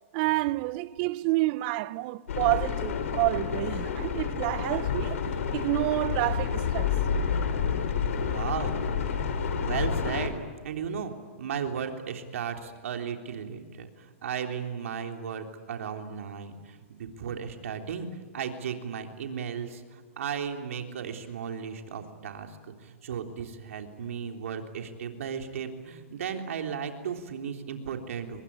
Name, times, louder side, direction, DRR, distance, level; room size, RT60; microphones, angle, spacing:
voice 1, 0.1-5.2 5.5-6.9, right 20 dB, 40° right, 0.8 m, -28 dB
sound 1, 2.3-10.3, left 6 dB, 70° left, 3.7 m, -29 dB
voice 2, 8.2-8.7 9.6-11.1 11.4-18.1 18.3-28.4, right 7 dB, 70° right, 3.5 m, -35 dB
25.0 x 22.5 x 9.7 m
hypercardioid pair, 140°, 8 cm